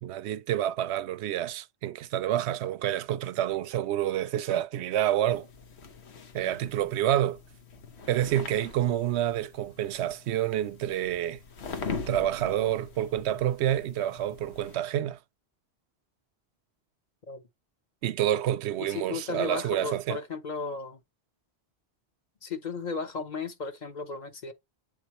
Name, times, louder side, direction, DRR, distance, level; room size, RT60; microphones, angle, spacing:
voice 1, 0.0-5.5 6.3-7.4 8.1-11.4 12.1-15.2 18.0-20.2, right 12 dB, 90° right, 0.8 m, -28 dB
sound 1, 5.3-14.8, left 5 dB, 85° left, 1.2 m, -42 dB
voice 2, 18.8-21.0 22.4-24.5, left 4 dB, 45° left, 0.9 m, -35 dB
8.0 x 4.0 x 3.0 m
omnidirectional pair, 1.1 m